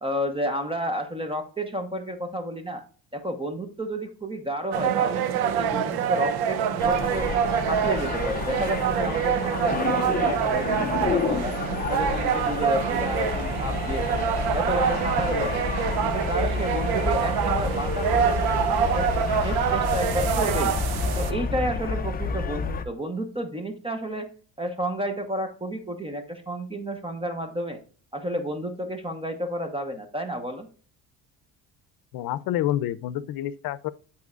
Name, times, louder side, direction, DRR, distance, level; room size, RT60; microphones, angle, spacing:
voice 1, 0.0-2.8 3.1-7.3 7.7-11.6 11.9-14.2 14.5-15.7 16.0-20.8 21.2-24.3 24.6-27.8 28.1-30.7, equal, 15° right, 1.0 m, -31 dB
sound 1, 4.7-21.3, right 8 dB, 85° right, 0.9 m, -26 dB
sound 2, 6.8-22.9, left 5 dB, 25° left, 0.6 m, -30 dB
voice 2, 32.1-33.9, left 12 dB, 70° left, 0.7 m, -28 dB
12.5 x 4.3 x 2.4 m
cardioid pair, 105°, 37 cm